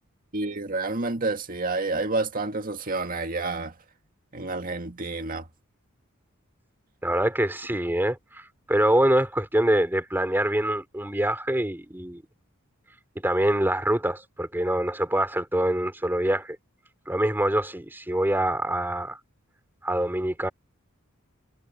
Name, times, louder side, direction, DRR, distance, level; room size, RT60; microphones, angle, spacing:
voice 1, 0.3-3.7 4.3-5.5, right 3 dB, 45° right, 2.0 m, -29 dB
voice 2, 7.0-12.2 13.2-16.6 17.1-19.2 19.8-20.5, right 1 dB, 10° right, 3.1 m, -25 dB
head